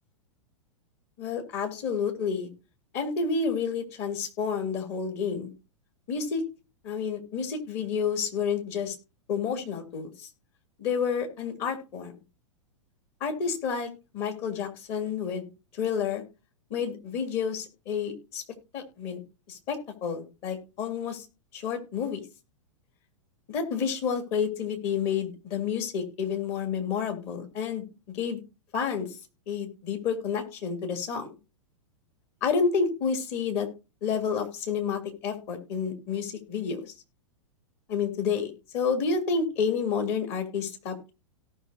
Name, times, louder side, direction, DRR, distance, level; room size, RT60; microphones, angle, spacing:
voice 1, 1.2-2.5 2.9-5.5 6.1-6.4 6.8-8.9 9.3-10.3 10.8-12.1 13.2-16.2 16.7-18.4 18.7-19.2 19.5-21.3 21.5-22.2 23.5-28.4 28.7-29.2 29.5-31.3 32.4-33.7 34.0-36.9 37.9-41.1, left 6 dB, 45° left, 3 dB, 3.3 m, -30 dB
17.5 x 6.1 x 2.9 m, 0.30 s
hypercardioid pair, 105°, 17 cm